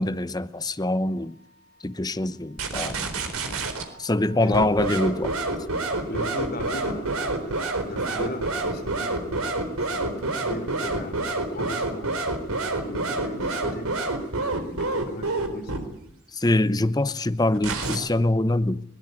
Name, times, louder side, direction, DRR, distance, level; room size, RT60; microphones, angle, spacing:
voice 1, 0.0-1.4 1.8-3.1 4.0-5.3 16.3-18.8, left 1 dB, 20° left, 0.8 m, -24 dB
sound 1, 2.6-3.9 4.5-15.8 17.5-18.0, right 2 dB, 85° right, 4.2 m, -27 dB
voice 2, 6.1-12.1 12.6-14.1 14.6-16.0, left 1 dB, 45° left, 3.6 m, -38 dB
22.0 x 20.5 x 9.7 m
head